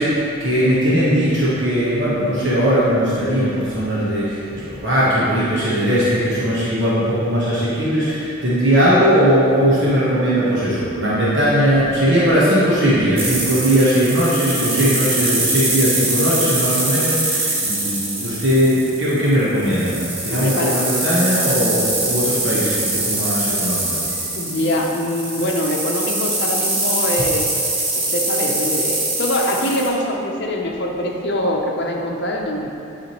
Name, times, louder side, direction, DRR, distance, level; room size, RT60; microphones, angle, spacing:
voice 1, 0.0-19.9 20.2-24.1, equal, 60° right, -9 dB, 1.2 m, -19 dB
sound 1, 13.2-29.9, right 2 dB, 30° right, 1.0 m, -23 dB
voice 2, 20.3-20.8 23.1-23.2 24.4-27.5 27.9-32.7, left 1 dB, 55° left, 0 dB, 0.7 m, -23 dB
8.5 x 4.9 x 3.0 m, 2.7 s
head